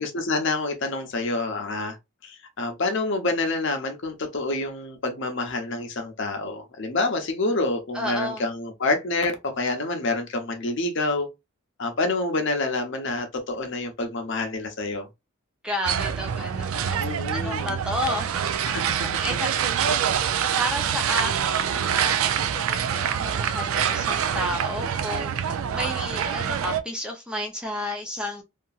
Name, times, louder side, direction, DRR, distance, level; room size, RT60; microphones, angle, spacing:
voice 1, 0.0-2.0 2.2-11.3 11.8-15.1 17.0-17.8 18.6-18.9, left 2 dB, 55° left, 0.7 m, -27 dB
voice 2, 7.9-8.4 15.6-17.0 17.3-19.5 20.6-28.4, left 1 dB, 5° right, 0.4 m, -32 dB
sound 1, 15.9-26.8, right 8 dB, 70° right, 0.4 m, -25 dB
2.8 x 2.5 x 2.3 m
head